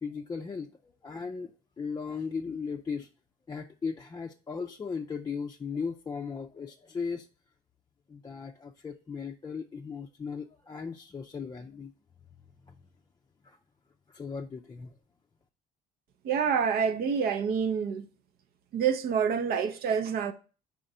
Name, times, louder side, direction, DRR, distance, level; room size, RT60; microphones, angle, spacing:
voice 1, 0.0-3.1 3.5-7.3 8.1-11.9 13.4-13.6 14.1-14.9, left 5 dB, 20° left, 0.5 m, -37 dB
voice 2, 16.2-18.0 18.7-20.3, right 7 dB, 65° right, 0.7 m, -27 dB
4.9 x 3.8 x 5.4 m
cardioid pair, 110°, 17 cm